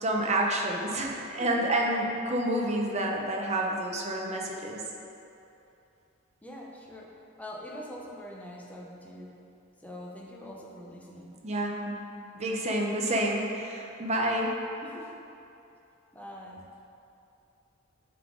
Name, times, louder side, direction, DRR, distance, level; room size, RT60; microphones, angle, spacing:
voice 1, 0.0-4.8 11.4-12.1 12.3-14.5, right 1 dB, 35° right, 0 dB, 0.7 m, -29 dB
voice 2, 1.4-1.7 6.4-9.4 9.8-11.4 14.8-15.1 16.1-16.7, left 1 dB, 5° left, -2 dB, 0.6 m, -44 dB
9.1 x 3.7 x 3.7 m, 2.7 s
head